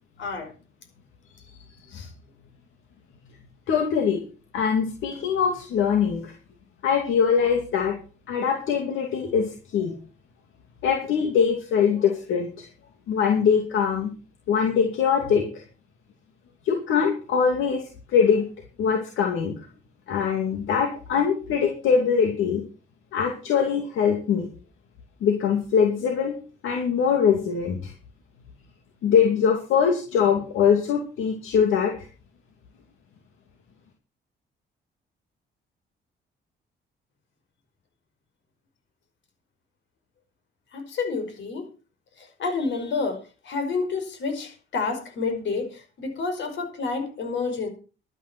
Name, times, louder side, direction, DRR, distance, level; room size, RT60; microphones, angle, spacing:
voice 1, 0.2-0.5 1.9-2.1 40.7-41.7 42.2-47.7, left 4 dB, 70° left, 6 dB, 5.3 m, -29 dB
voice 2, 3.7-4.2 4.5-6.3 6.8-8.0 8.3-9.9 10.8-12.7 13.1-14.1 14.5-15.5 16.6-18.5 18.8-19.7 20.1-22.6 23.1-24.5 25.2-26.4 26.6-27.9 29.0-32.1, left 7 dB, 85° left, 3 dB, 2.5 m, -22 dB
12.0 x 9.3 x 6.1 m, 0.35 s
cardioid pair, 90°, 20 cm